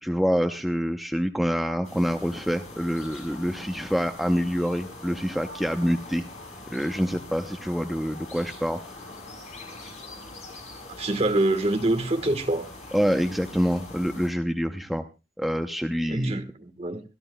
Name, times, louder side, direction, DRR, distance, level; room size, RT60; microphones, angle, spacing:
voice 1, 0.0-6.3 6.7-8.8 12.9-15.1 15.4-16.4, equal, ahead, 0.6 m, -26 dB
sound 1, 1.8-14.3, left 2 dB, 40° left, 6.2 m, -43 dB
voice 2, 10.9-12.7 16.1-17.0, right 1 dB, 35° right, 1.4 m, -25 dB
25.5 x 13.0 x 2.2 m
head